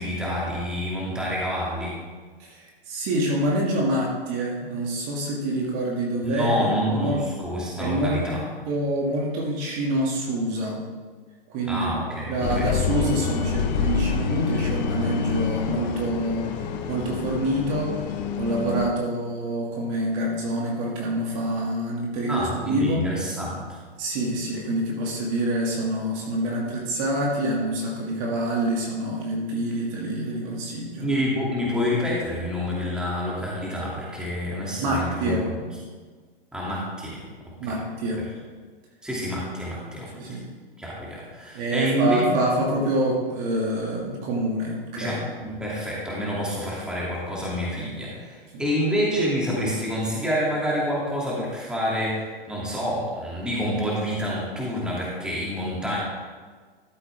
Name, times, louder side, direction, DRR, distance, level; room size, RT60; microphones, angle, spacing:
voice 1, 0.0-2.0 6.2-8.4 11.7-12.7 22.3-23.8 31.0-35.6 36.5-37.1 37.6-37.7 39.0-40.1 40.8-42.4 45.0-56.0, equal, 5° right, -6 dB, 2.6 m, -27 dB
voice 2, 2.4-7.2 7.8-8.2 8.7-10.8 11.5-12.0 12.3-18.0 18.4-23.1 24.0-31.1 34.8-35.4 37.6-38.2 40.1-40.4 41.5-45.2 48.5-48.6, right 1 dB, 40° right, -2 dB, 2.4 m, -26 dB
sound 1, 12.4-18.9, left 7 dB, 45° left, 1.1 m, -27 dB
13.0 x 7.9 x 3.5 m, 1.5 s
hypercardioid pair, 125°, 31 cm